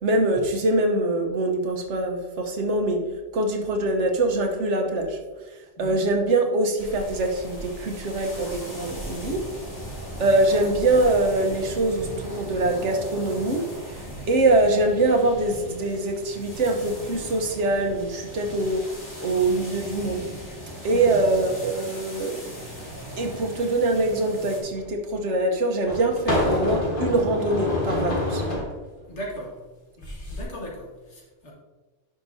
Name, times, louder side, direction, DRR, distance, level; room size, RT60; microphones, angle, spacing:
voice 1, 0.0-3.0 3.3-5.2 5.8-9.4 10.2-13.6 14.3-18.8 19.2-20.3 20.8-22.5 23.2-28.4, right 2 dB, 90° right, 4 dB, 1.3 m, -23 dB
sound 1, 6.8-24.6, equal, 15° left, 1.9 m, -38 dB
voice 2, 20.9-21.2 29.1-29.6 30.3-31.5, equal, 80° left, -4 dB, 2.2 m, -37 dB
sound 2, 24.8-24.9 25.9-28.7 30.0-30.4, left 1 dB, 50° left, 1.7 m, -27 dB
10.5 x 6.0 x 2.7 m, 1.2 s
omnidirectional pair, 1.2 m